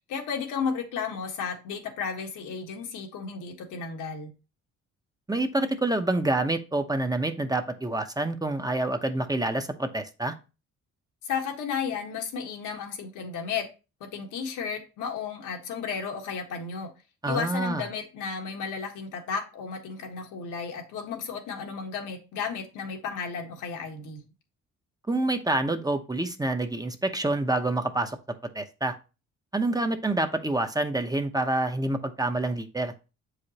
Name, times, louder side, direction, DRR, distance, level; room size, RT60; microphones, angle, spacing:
voice 1, 0.1-4.3 11.2-13.7 14.0-16.9 17.2-24.2, left 6 dB, 85° left, 1.6 m, -33 dB
voice 2, 5.3-10.3 17.2-17.8 25.1-28.2 28.5-28.9 29.5-32.9, right 2 dB, 10° right, 0.8 m, -27 dB
7.3 x 5.0 x 2.9 m
cardioid pair, 90°, 30 cm